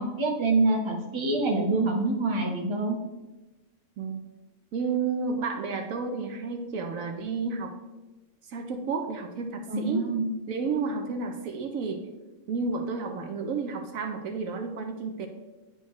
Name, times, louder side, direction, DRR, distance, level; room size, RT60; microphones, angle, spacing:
voice 1, 0.0-3.0 9.7-10.3, right 3 dB, 25° right, 0 dB, 0.8 m, -26 dB
voice 2, 4.7-7.7 8.5-10.1 10.5-12.1 12.5-15.3, right 4 dB, 70° right, 5 dB, 1.0 m, -31 dB
10.5 x 3.6 x 3.1 m, 1.1 s
omnidirectional pair, 1.5 m